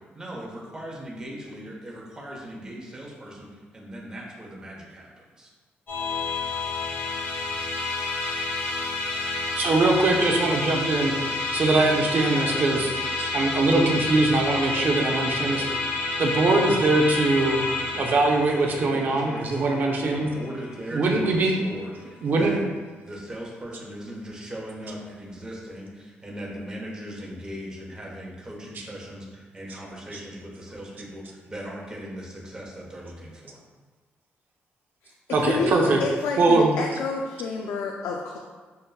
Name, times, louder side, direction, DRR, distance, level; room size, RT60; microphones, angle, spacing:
voice 1, 0.1-5.5 18.7-19.4 20.1-22.6 23.0-33.6, equal, 15° right, -3 dB, 0.9 m, -39 dB
Musical instrument, 5.9-21.4, left 3 dB, 45° left, 0.8 m, -29 dB
voice 2, 9.6-11.1 11.5-12.9 13.2-15.7 16.2-17.6 17.9-20.3 20.9-21.5 22.2-22.5 28.7-28.9 35.3-36.0 36.4-36.7, right 2 dB, 50° right, 1 dB, 0.5 m, -22 dB
voice 3, 35.4-38.4, left 4 dB, 85° left, 1 dB, 0.3 m, -29 dB
6.5 x 2.2 x 2.3 m, 1.4 s
cardioid pair, 115°, 4 cm